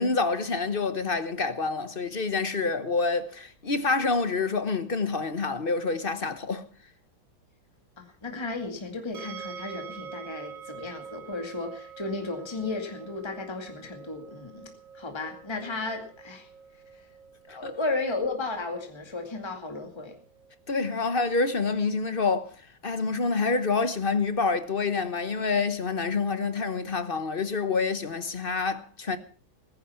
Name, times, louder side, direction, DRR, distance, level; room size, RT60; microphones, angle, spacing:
voice 1, 0.0-6.6 17.5-17.7 20.7-22.5 22.8-29.2, left 4 dB, 35° left, 1.0 m, -27 dB
voice 2, 8.0-16.5 17.5-20.2, left 3 dB, 15° left, 2.2 m, -34 dB
sound 1, 9.1-22.1, right 6 dB, 45° right, 2.4 m, -46 dB
20.0 x 10.5 x 5.7 m
omnidirectional pair, 2.1 m